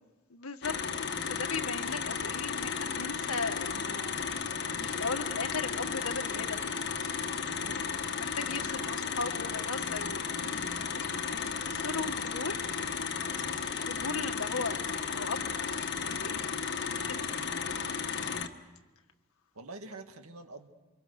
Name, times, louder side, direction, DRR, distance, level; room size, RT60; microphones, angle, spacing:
voice 1, 0.3-0.7 1.2-4.3 4.7-6.7 7.6-11.0 11.3-12.6 13.8-15.5 16.0-16.4 17.0-17.4, left 4 dB, 80° left, 6 dB, 1.8 m, -38 dB
sound 1, 0.6-18.5, left 6 dB, 55° left, 1.4 m, -34 dB
voice 2, 19.5-20.7, right 2 dB, 85° right, 6 dB, 2.0 m, -47 dB
28.5 x 25.0 x 6.6 m, 1.2 s
head